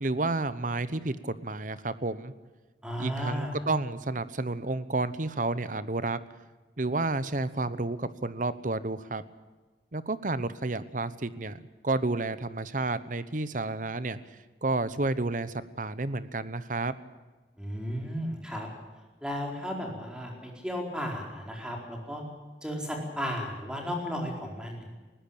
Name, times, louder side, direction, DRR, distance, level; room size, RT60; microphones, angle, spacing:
voice 1, 0.0-2.3 3.0-6.2 6.8-9.2 9.9-14.2 14.6-16.9, right 2 dB, 45° right, 15 dB, 1.0 m, -31 dB
voice 2, 2.8-3.6 17.6-18.7 19.2-22.2 22.6-24.9, equal, 5° right, 0 dB, 4.4 m, -34 dB
20.0 x 16.5 x 8.8 m, 1.3 s
head